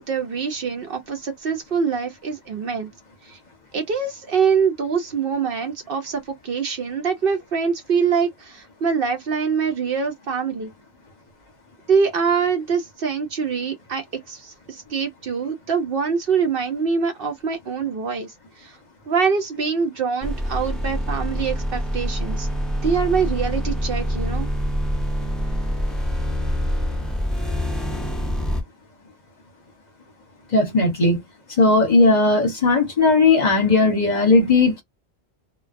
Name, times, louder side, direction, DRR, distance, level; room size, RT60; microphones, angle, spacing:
voice 1, 0.0-2.9 3.3-3.4 3.7-10.7 11.9-18.7 19.1-22.5 22.8-24.5, right 6 dB, 60° right, 0.7 m, -24 dB
sound 1, 20.2-28.6, equal, ahead, 0.3 m, -25 dB
voice 2, 30.5-31.2 31.6-34.8, left 3 dB, 45° left, 0.8 m, -17 dB
2.3 x 2.2 x 2.4 m
omnidirectional pair, 1.2 m